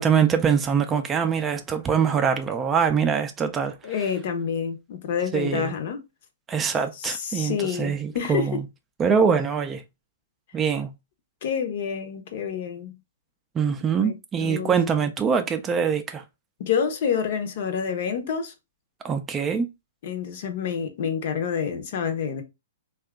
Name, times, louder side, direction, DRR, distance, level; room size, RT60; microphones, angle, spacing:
voice 1, 0.0-3.8 5.3-5.7 6.5-8.6 9.0-9.8 10.5-10.9 13.6-16.2 19.0-19.7, right 6 dB, 20° right, 0.4 m, -23 dB
voice 2, 3.8-6.0 7.0-8.6 11.4-12.9 13.8-14.1 14.4-14.8 16.6-18.5 20.0-22.4, left 7 dB, 55° left, 0.7 m, -28 dB
2.7 x 2.4 x 3.4 m
hypercardioid pair, 130°, 0 cm